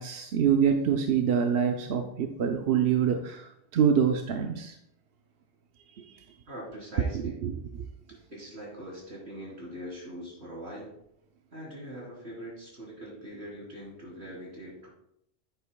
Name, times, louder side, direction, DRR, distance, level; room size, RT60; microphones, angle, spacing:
voice 1, 0.0-4.8 5.9-6.2 7.0-7.9, right 7 dB, 70° right, 5 dB, 0.8 m, -26 dB
voice 2, 6.5-7.4 8.3-10.9 11.5-14.9, equal, 85° right, -4 dB, 3.7 m, -42 dB
10.5 x 9.1 x 2.2 m, 0.77 s
omnidirectional pair, 1.1 m